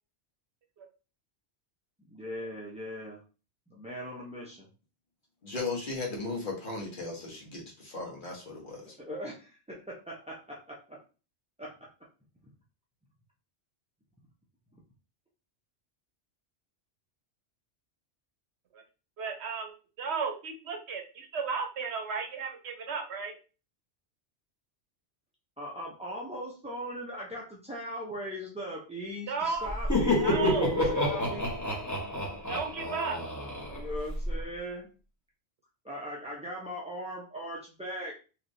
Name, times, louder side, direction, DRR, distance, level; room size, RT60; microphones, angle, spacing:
voice 1, 2.1-3.2 3.7-4.7 9.0-11.0 11.6-11.9 25.6-31.5 33.7-34.9 35.8-38.1, equal, 10° right, -5 dB, 0.3 m, -39 dB
voice 2, 5.4-8.9, left 3 dB, 50° left, -2 dB, 1.1 m, -36 dB
voice 3, 19.2-23.4 29.3-29.7 30.2-30.7 32.5-33.2, right 5 dB, 70° right, 4 dB, 0.9 m, -34 dB
Laughter, 29.6-34.3, left 1 dB, 15° left, 1.0 m, -29 dB
3.2 x 2.8 x 2.6 m, 0.34 s
omnidirectional pair, 1.2 m